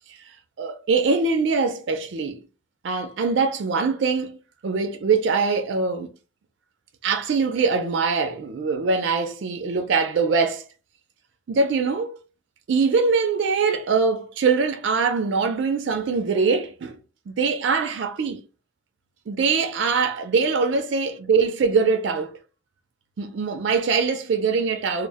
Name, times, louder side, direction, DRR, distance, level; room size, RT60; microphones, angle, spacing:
voice 1, 0.6-2.4 2.8-4.4 4.6-6.1 7.0-10.7 11.5-12.2 12.7-17.0 17.3-18.4 19.3-22.4 23.2-25.1, right 4 dB, 65° right, 0.4 m, -23 dB
2.0 x 2.0 x 3.3 m
head